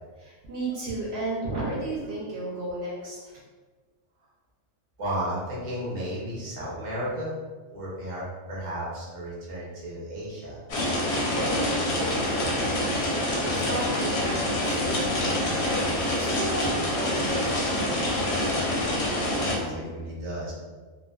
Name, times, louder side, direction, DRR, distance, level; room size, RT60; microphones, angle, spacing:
voice 1, 0.2-3.4 13.3-18.2, right 2 dB, 65° right, -6 dB, 0.8 m, -34 dB
voice 2, 5.0-7.3 7.7-10.6 11.3-13.0 19.4-20.5, right 1 dB, 35° right, -7 dB, 0.6 m, -34 dB
sound 1, 10.7-19.5, left 1 dB, 65° left, 0.8 m, -26 dB
2.4 x 2.3 x 2.2 m, 1.4 s
omnidirectional pair, 1.3 m